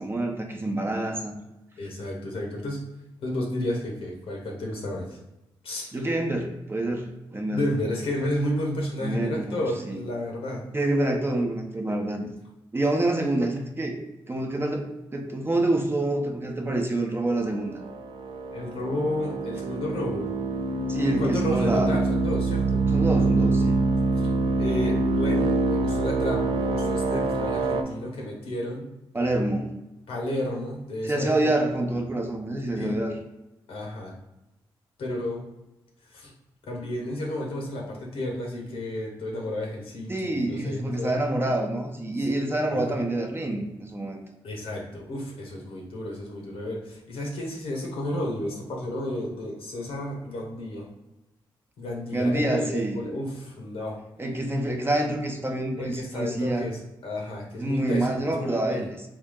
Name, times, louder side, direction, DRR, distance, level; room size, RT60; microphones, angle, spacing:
voice 1, 0.0-1.3 5.9-7.6 9.0-10.0 10.7-12.3 12.7-14.9 15.1-17.8 20.9-22.0 22.9-23.8 29.1-29.8 31.0-33.1 40.1-44.2 52.1-53.0 54.2-56.7 57.6-59.0, right 1 dB, 25° right, 2 dB, 0.8 m, -27 dB
voice 2, 1.8-2.8 3.2-5.2 5.6-5.9 7.5-10.6 18.5-20.3 21.2-22.8 24.2-24.3 24.6-28.9 30.1-31.3 32.8-33.0 33.7-34.1 35.0-35.4 36.1-36.3 36.6-41.2 42.7-42.9 44.4-50.9 51.8-54.0 55.8-58.9, left 1 dB, 80° left, -1 dB, 1.2 m, -32 dB
sound 1, 17.8-27.8, right 3 dB, 60° right, 0.5 m, -25 dB
3.6 x 2.7 x 3.6 m, 0.95 s
cardioid pair, 60°, 10 cm